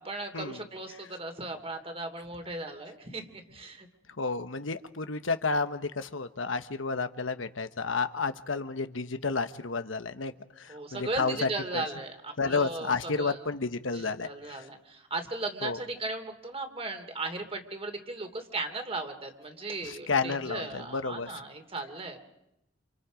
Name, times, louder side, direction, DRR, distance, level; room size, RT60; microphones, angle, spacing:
voice 1, 0.0-3.3 3.5-3.9 10.7-13.5 13.9-22.2, right 2 dB, 30° right, 6 dB, 2.9 m, -37 dB
voice 2, 4.2-10.3 10.6-11.8 12.4-14.6 15.6-15.8 19.8-21.3, left 4 dB, 90° left, 10 dB, 1.2 m, -31 dB
29.0 x 28.0 x 5.2 m, 0.85 s
head